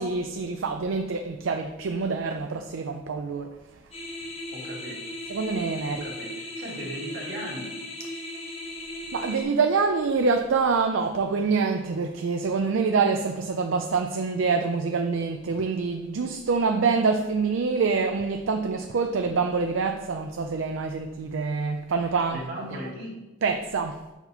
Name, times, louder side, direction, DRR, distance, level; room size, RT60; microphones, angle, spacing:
voice 1, 0.0-3.5 5.3-6.0 9.1-22.4 23.4-24.0, right 4 dB, 80° right, 0.4 m, -26 dB
sound 1, 3.9-9.4, left 1 dB, 30° left, 1.1 m, -37 dB
voice 2, 4.5-5.2 5.9-7.7 22.3-23.2, equal, 55° right, 2.2 m, -37 dB
7.0 x 4.1 x 5.6 m
head